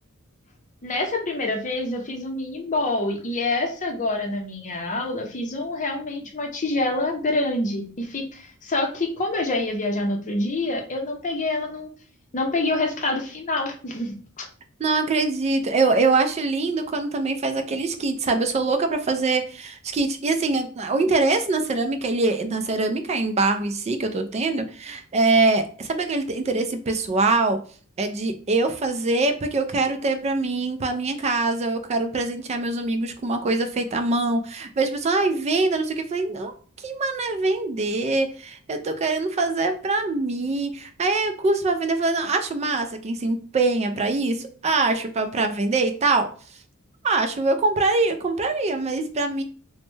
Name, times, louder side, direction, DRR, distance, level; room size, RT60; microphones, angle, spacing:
voice 1, 0.8-11.9 12.3-14.5, left 2 dB, 35° left, 3 dB, 0.6 m, -26 dB
voice 2, 14.8-27.6 28.0-36.5 36.8-46.3 47.0-49.4, right 3 dB, 30° right, 7 dB, 0.3 m, -23 dB
3.1 x 2.1 x 3.1 m, 0.42 s
head